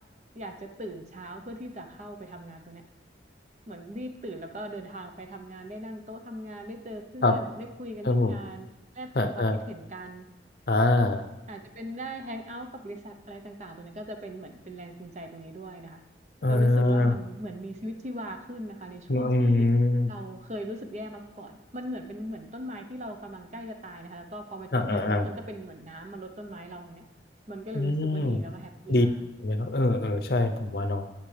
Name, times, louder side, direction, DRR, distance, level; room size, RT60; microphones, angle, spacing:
voice 1, 0.3-2.8 3.7-8.7 8.9-10.3 11.5-16.0 16.5-19.7 20.1-27.0 27.5-29.2, equal, 40° right, 5 dB, 0.8 m, -40 dB
voice 2, 8.0-8.4 9.2-9.6 10.7-11.2 16.4-17.1 19.1-20.1 24.7-25.3 27.7-28.4 28.9-29.1 29.4-31.1, left 2 dB, 55° left, 7 dB, 0.7 m, -24 dB
17.5 x 6.0 x 3.4 m, 1.0 s
head